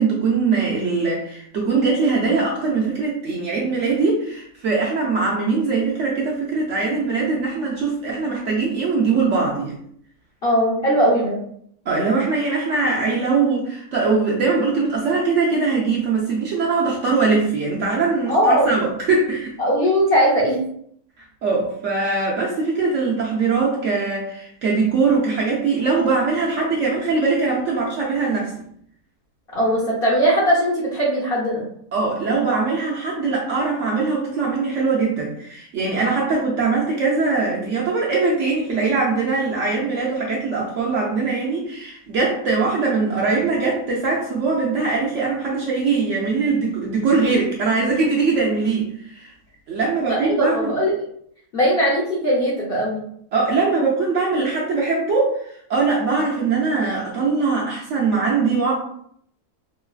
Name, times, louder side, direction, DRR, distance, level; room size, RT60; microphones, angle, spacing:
voice 1, 0.0-9.8 11.9-19.6 21.2-28.5 31.9-49.3 49.7-50.7 53.3-58.7, right 4 dB, 65° right, -3 dB, 0.8 m, -21 dB
voice 2, 10.4-11.4 18.3-18.8 19.6-20.6 29.5-31.7 50.1-50.9 51.5-53.0, equal, 45° left, -6 dB, 0.8 m, -19 dB
3.1 x 2.3 x 2.3 m, 0.67 s
omnidirectional pair, 1.6 m